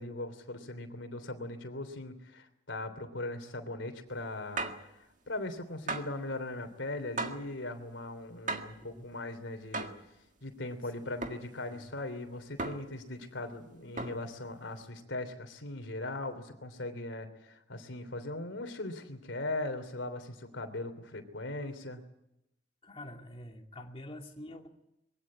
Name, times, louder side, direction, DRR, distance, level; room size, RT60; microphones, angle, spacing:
voice 1, 0.0-4.7 5.3-9.9 10.4-22.0, left 2 dB, 75° left, 8 dB, 3.2 m, -39 dB
sound 1, 4.6-4.9 5.9-6.2 7.2-7.5 8.5-8.8 9.7-10.1 11.2-11.5 12.6-13.0 14.0-14.3, right 3 dB, 40° right, 1.8 m, -36 dB
voice 2, 22.8-24.7, left 1 dB, 30° left, 2 dB, 2.5 m, -47 dB
22.5 x 16.5 x 9.7 m, 0.86 s
head